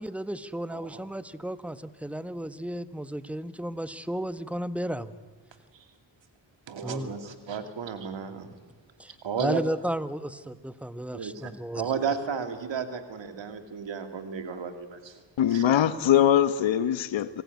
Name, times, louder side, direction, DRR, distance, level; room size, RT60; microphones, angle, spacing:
voice 1, 0.0-5.1 6.8-7.2 9.0-11.9, right 1 dB, 5° right, 1.3 m, -33 dB
voice 2, 0.7-1.0 5.7-5.8 6.7-8.5 9.2-9.6 11.1-11.5 11.8-15.2 15.5-15.6, right 6 dB, 80° right, 2.6 m, -33 dB
voice 3, 15.4-17.4, left 10 dB, 85° left, 1.2 m, -22 dB
26.0 x 18.0 x 9.6 m
cardioid pair, 50°, 44 cm